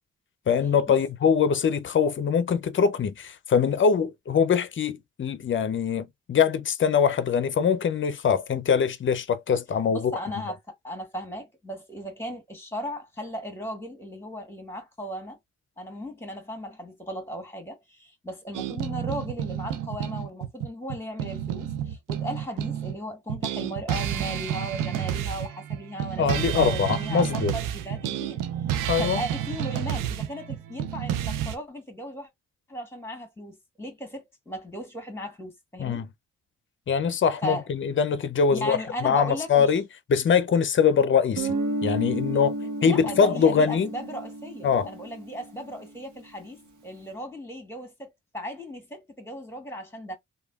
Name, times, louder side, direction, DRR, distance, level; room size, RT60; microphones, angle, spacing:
voice 1, 0.5-10.1 26.2-27.5 28.9-29.2 35.8-36.1 36.9-39.8 40.1-41.5 41.8-42.5 42.8-43.9 44.6-44.9, left 6 dB, 40° left, 0.5 m, -23 dB
voice 2, 9.9-10.6 10.8-15.4 15.8-28.4 29.0-32.3 32.7-36.0 37.4-37.7 38.5-39.7 42.3-42.5 42.8-50.1, equal, 10° left, 1.6 m, -36 dB
sound 1, 18.5-23.0 23.3-31.6, right 10 dB, 85° right, 0.5 m, -30 dB
Guitar, 41.4-45.9, right 2 dB, 70° right, 1.0 m, -32 dB
3.0 x 2.3 x 2.3 m
supercardioid pair, 55°, 31 cm